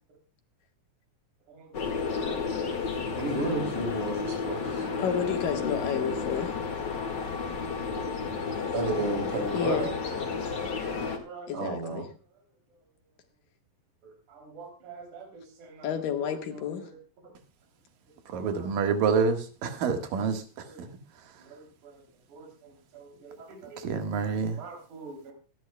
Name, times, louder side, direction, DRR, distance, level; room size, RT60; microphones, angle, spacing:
voice 1, 1.5-2.3 3.2-4.9 8.6-10.0 10.3-10.4 11.1-12.1 14.0-17.3 18.3-18.7 20.6-20.9 21.4-22.0 22.3-24.0 24.5-25.3, right 2 dB, 65° right, 2 dB, 4.5 m, -36 dB
sound 1, 1.7-11.2, left 5 dB, 40° left, 2.0 m, -32 dB
voice 2, 5.0-6.5 9.5-9.8 11.5-12.0 15.8-16.8, left 8 dB, 85° left, 5 dB, 3.2 m, -30 dB
voice 3, 18.3-20.9 23.8-24.6, right 5 dB, 85° right, 6 dB, 3.3 m, -28 dB
24.5 x 10.5 x 2.2 m, 0.34 s
omnidirectional pair, 3.8 m